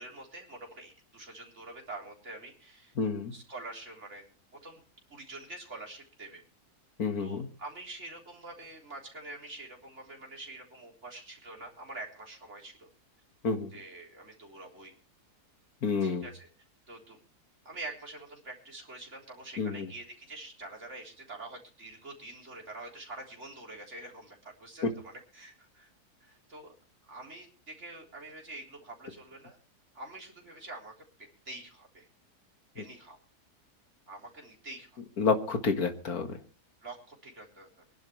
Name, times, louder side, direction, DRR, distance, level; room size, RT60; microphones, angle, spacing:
voice 1, 0.0-2.9 3.3-4.2 4.5-4.8 5.1-6.4 7.2-12.9 13.7-14.9 16.0-16.5 16.9-17.2 17.7-25.9 26.2-26.7 27.0-29.6 29.9-30.9 31.5-32.1 32.7-33.2 34.1-34.9 36.8-37.7, right 2 dB, 45° right, -1 dB, 4.0 m, -46 dB
voice 2, 3.0-3.3 7.0-7.5 13.4-13.7 15.8-16.3 19.6-19.9 24.8-24.9 32.8-32.9 35.2-36.4, left 4 dB, 65° left, 7 dB, 2.1 m, -29 dB
24.5 x 11.0 x 3.2 m, 0.35 s
omnidirectional pair, 1.7 m